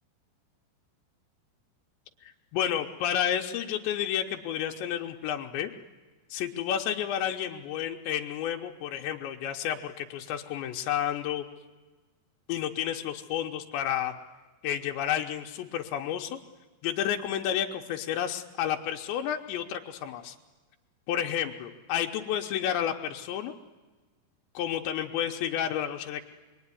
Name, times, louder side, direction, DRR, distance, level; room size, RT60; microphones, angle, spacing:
voice 1, 2.2-5.7 6.3-11.4 12.5-14.1 14.6-16.4 16.8-20.4 21.1-23.5 24.5-26.2, left 10 dB, 85° left, 3 dB, 3.2 m, -31 dB
27.0 x 22.0 x 9.8 m, 1.3 s
omnidirectional pair, 5.1 m